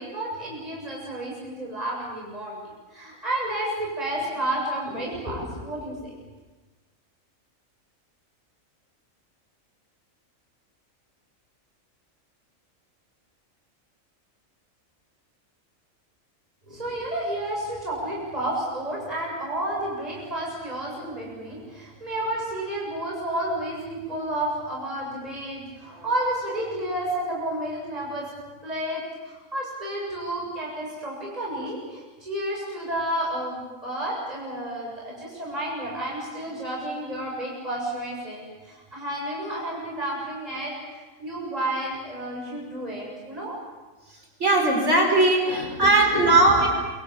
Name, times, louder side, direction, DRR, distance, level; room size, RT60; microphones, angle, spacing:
voice 1, 0.0-6.1 16.7-28.3 28.6-43.5 45.8-46.7, right 1 dB, 30° right, -3 dB, 7.5 m, -31 dB
voice 2, 44.4-46.7, right 2 dB, 60° right, 2 dB, 5.3 m, -19 dB
28.5 x 24.5 x 7.4 m, 1.3 s
omnidirectional pair, 1.4 m